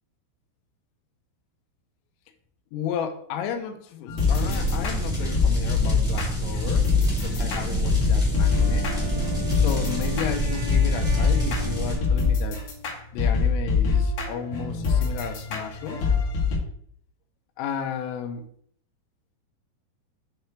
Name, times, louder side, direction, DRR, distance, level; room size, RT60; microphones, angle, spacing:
voice 1, 2.7-8.9 9.5-12.6 13.1-16.1 17.6-18.4, left 8 dB, 85° left, 6 dB, 3.4 m, -33 dB
sound 1, 4.1-16.6, left 5 dB, 55° left, 2.1 m, -25 dB
sound 2, 4.2-12.0, equal, ahead, 1.0 m, -27 dB
Wind instrument woodwind instrument, 8.3-13.0, equal, 70° right, 3.0 m, -38 dB
8.8 x 3.3 x 4.5 m, 0.62 s
omnidirectional pair, 5.8 m